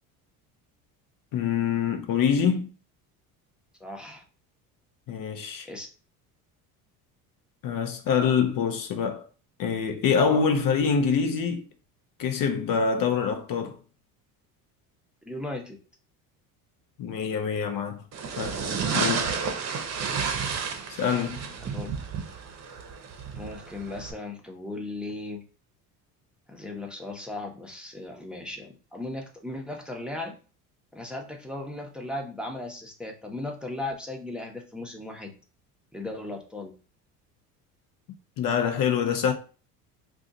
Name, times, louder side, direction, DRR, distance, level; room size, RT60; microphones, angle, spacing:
voice 1, 1.3-2.7 5.1-5.7 7.6-9.3 9.6-11.7 12.2-13.8 17.0-18.0 18.4-18.6 18.9-19.4 20.9-21.4 38.4-39.3, left 6 dB, 50° left, 0.8 m, -25 dB
voice 2, 3.8-4.2 5.7-5.9 15.2-15.8 21.6-21.9 23.3-25.4 26.5-30.3 30.9-35.3 35.9-36.7, left 2 dB, ahead, 0.8 m, -37 dB
sound 1, 18.1-24.1, right 6 dB, 35° right, 0.8 m, -31 dB
2.4 x 2.4 x 4.0 m
hypercardioid pair, 75°, 44 cm